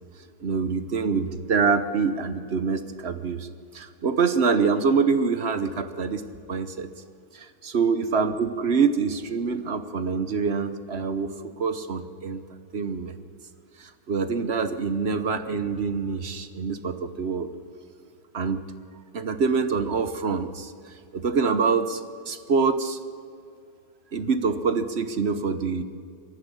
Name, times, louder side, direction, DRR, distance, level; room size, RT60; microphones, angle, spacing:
voice 1, 0.4-3.5 3.7-6.9 7.3-12.4 12.7-13.2 13.8-17.5 18.3-18.6 19.1-23.0 24.1-25.8, right 5 dB, 45° right, 11 dB, 1.1 m, -25 dB
22.0 x 14.5 x 9.8 m, 2.3 s
omnidirectional pair, 1.9 m